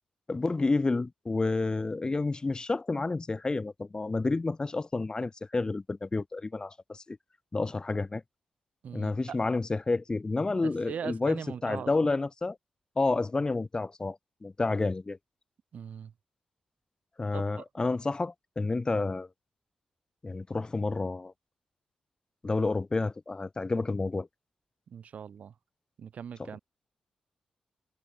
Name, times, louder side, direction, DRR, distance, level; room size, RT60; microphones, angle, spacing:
voice 1, 0.3-7.2 7.5-8.2 8.9-12.6 13.0-15.2 17.2-19.3 20.2-21.3 22.4-24.3 26.4-26.5, left 3 dB, 35° left, 1.0 m, -30 dB
voice 2, 8.8-9.4 10.6-11.9 15.7-16.1 17.3-17.6 24.9-25.5 26.0-26.6, right 7 dB, 70° right, 5.5 m, -40 dB
supercardioid pair, 45°, 3 cm